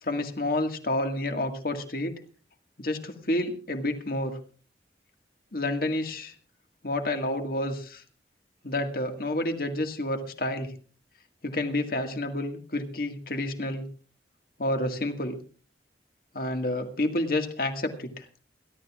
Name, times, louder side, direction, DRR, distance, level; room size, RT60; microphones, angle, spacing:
voice 1, 0.0-2.2 2.8-4.4 5.5-6.3 6.8-8.0 8.6-10.7 11.4-13.8 14.6-15.4 16.3-18.2, left 1 dB, 55° left, 5 dB, 1.9 m, -29 dB
28.5 x 12.0 x 2.4 m, 0.39 s
head